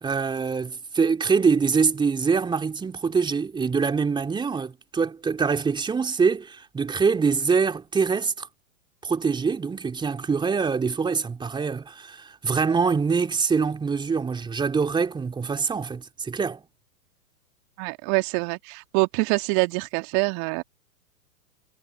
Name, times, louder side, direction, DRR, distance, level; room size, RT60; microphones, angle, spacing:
voice 1, 0.0-8.5 9.0-16.6, right 5 dB, 10° right, 3.4 m, -24 dB
voice 2, 17.8-20.6, right 39 dB, 35° right, 2.4 m, -25 dB
figure-of-eight pair, 115°, 45 cm